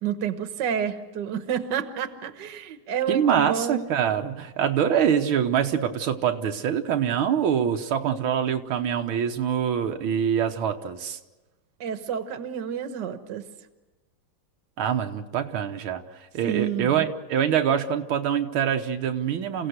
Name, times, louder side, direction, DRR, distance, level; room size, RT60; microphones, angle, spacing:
voice 1, 0.0-3.9 11.8-13.5 16.4-17.1, right 8 dB, 60° right, 9 dB, 1.7 m, -29 dB
voice 2, 3.1-11.2 14.8-16.0 16.3-19.7, right 8 dB, 85° right, 5 dB, 1.9 m, -24 dB
29.0 x 16.0 x 8.0 m, 1.1 s
omnidirectional pair, 2.2 m